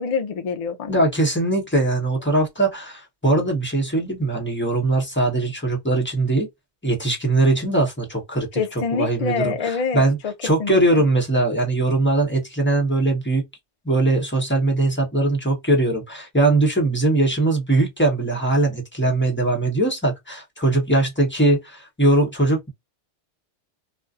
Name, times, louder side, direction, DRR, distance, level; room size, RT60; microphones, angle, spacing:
voice 1, 0.0-1.0 8.6-10.3 10.6-11.0, left 5 dB, 55° left, 0.4 m, -26 dB
voice 2, 0.9-6.5 6.8-8.5 8.9-13.4 13.8-22.7, right 2 dB, 10° left, 0.9 m, -21 dB
2.5 x 2.3 x 2.4 m
omnidirectional pair, 1.2 m